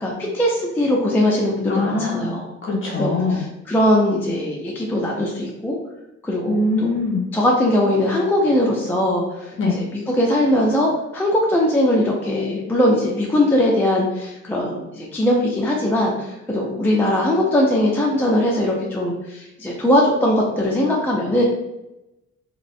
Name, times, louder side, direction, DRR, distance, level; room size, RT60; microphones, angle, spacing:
voice 1, 0.0-2.5 3.0-5.8 6.2-6.9 7.3-21.4, left 1 dB, 5° left, -2 dB, 0.3 m, -20 dB
voice 2, 1.7-2.3 2.6-3.4 6.5-7.2 9.6-9.7, left 3 dB, 40° left, -2 dB, 0.9 m, -22 dB
2.4 x 2.0 x 2.4 m, 0.93 s
cardioid pair, 90°, 30 cm